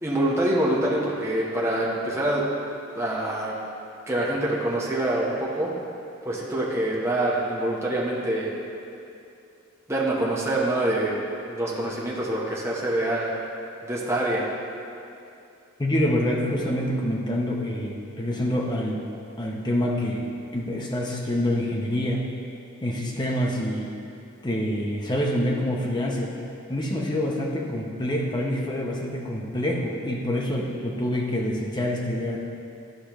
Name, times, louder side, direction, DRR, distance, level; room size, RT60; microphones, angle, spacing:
voice 1, 0.0-2.5 2.9-3.5 4.1-5.7 6.2-8.5 9.9-11.2 11.5-13.3 13.8-14.5, right 1 dB, 15° right, -4 dB, 1.0 m, -25 dB
voice 2, 15.8-19.0 19.4-20.3 20.5-22.2 22.8-23.9 24.4-26.3 26.7-32.4, left 1 dB, 20° left, -1 dB, 0.8 m, -26 dB
11.5 x 5.0 x 3.0 m, 2.7 s
head